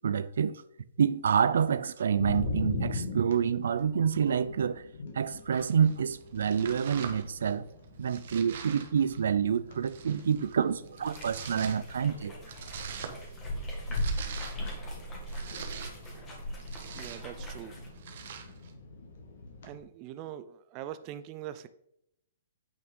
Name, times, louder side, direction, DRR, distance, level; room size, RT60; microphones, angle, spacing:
voice 1, 0.0-0.6 1.0-4.8 5.1-7.7 8.0-12.3, right 7 dB, 75° right, 0.6 m, -27 dB
sound 1, 2.2-19.8, left 3 dB, 60° left, 1.9 m, -42 dB
Domestic sounds home sounds, 5.5-18.7, right 7 dB, 50° right, 1.3 m, -46 dB
sound 2, 11.0-17.9, equal, 15° left, 2.2 m, -38 dB
voice 2, 16.9-17.8 19.6-21.7, right 11 dB, 25° right, 0.4 m, -42 dB
9.0 x 6.0 x 5.4 m
hypercardioid pair, 170°, 0 cm